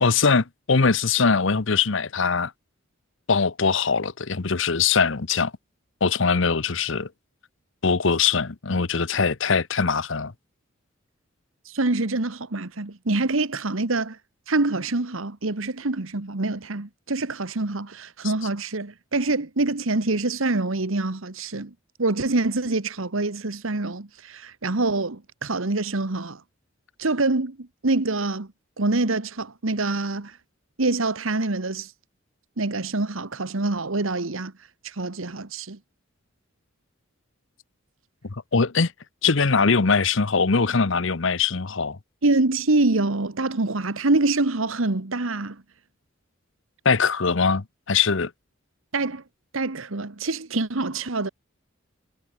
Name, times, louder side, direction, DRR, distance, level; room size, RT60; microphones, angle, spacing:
voice 1, 0.0-2.5 3.3-5.5 6.0-7.1 7.8-10.3 38.3-38.9 39.2-42.0 46.8-48.3, left 5 dB, 65° left, 0.9 m, -22 dB
voice 2, 11.6-14.2 14.5-21.7 22.0-26.4 27.0-28.5 28.8-30.4 30.8-31.9 32.6-34.5 34.8-35.8 42.2-45.6 48.9-49.2 49.5-51.3, right 2 dB, 75° right, 1.4 m, -25 dB
head